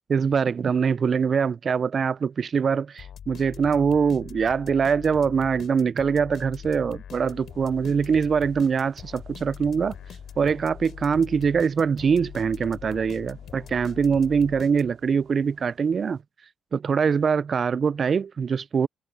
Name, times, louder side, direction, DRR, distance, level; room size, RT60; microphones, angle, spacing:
voice 1, 0.1-10.0 10.4-16.2 16.7-18.9, right 6 dB, 45° right, 0.3 m, -23 dB
sound 1, 3.0-15.2, left 9 dB, 65° left, 3.4 m, -42 dB
sound 2, 7.1-16.2, right 10 dB, 70° right, 4.2 m, -58 dB
cardioid pair, 90°, 0 cm